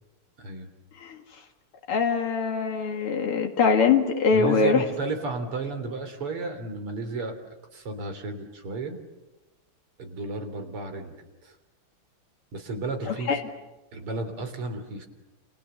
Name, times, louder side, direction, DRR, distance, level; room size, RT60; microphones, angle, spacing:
voice 1, 0.4-0.7 4.3-7.4 7.7-9.0 10.0-11.1 11.4-11.6 12.5-13.4 13.9-15.1, right 3 dB, 85° right, 6 dB, 4.4 m, -33 dB
voice 2, 1.9-4.8 13.1-13.4, left 5 dB, 85° left, 3 dB, 3.0 m, -23 dB
29.0 x 29.0 x 7.0 m, 1.1 s
omnidirectional pair, 2.4 m